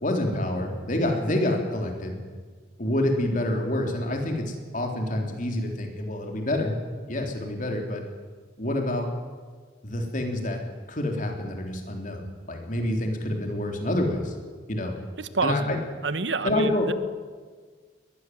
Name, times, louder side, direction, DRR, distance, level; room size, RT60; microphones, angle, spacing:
voice 1, 0.0-2.2 2.8-6.8 7.1-8.0 8.6-9.1 9.8-10.6 10.9-14.3 14.7-14.9 15.4-15.8 16.4-16.9, left 1 dB, 45° left, 3 dB, 3.4 m, -27 dB
voice 2, 15.2-16.9, right 4 dB, 90° right, 13 dB, 1.1 m, -29 dB
21.0 x 14.0 x 9.4 m, 1.5 s
head